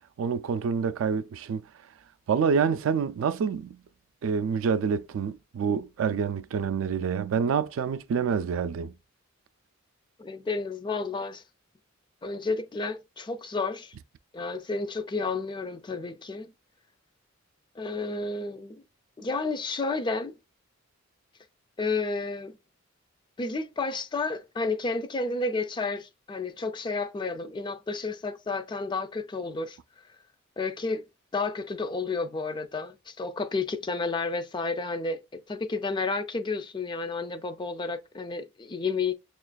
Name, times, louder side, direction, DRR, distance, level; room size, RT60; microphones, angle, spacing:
voice 1, 0.2-1.6 2.3-3.8 4.2-8.9, right 6 dB, 70° right, 0.3 m, -27 dB
voice 2, 10.2-11.4 12.2-13.9 14.3-16.5 17.8-18.8 19.2-20.3 21.8-22.6 23.4-29.8 30.6-31.0 31.3-39.1, left 3 dB, 20° left, 0.3 m, -31 dB
6.2 x 2.4 x 2.3 m
head